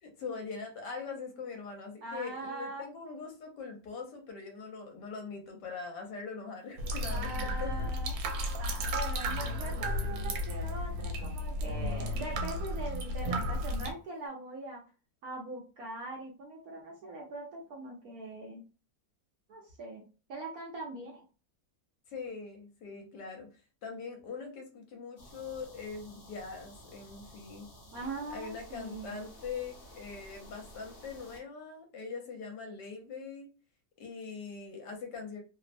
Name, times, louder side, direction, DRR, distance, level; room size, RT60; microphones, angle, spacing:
voice 1, 0.0-7.9 22.1-23.5 23.8-27.7 28.3-33.5 34.0-35.4, left 5 dB, 70° left, 3 dB, 1.2 m, -42 dB
voice 2, 2.0-2.8 7.1-8.1 8.6-14.8 15.2-18.6 19.5-20.0 20.3-21.2 27.9-29.2, right 2 dB, 65° right, -1 dB, 0.9 m, -41 dB
sound 1, 6.8-13.9, equal, 80° right, 1.3 m, -33 dB
sound 2, 25.2-31.4, equal, 55° left, 0.6 m, -53 dB
3.0 x 2.0 x 2.5 m, 0.34 s
omnidirectional pair, 2.0 m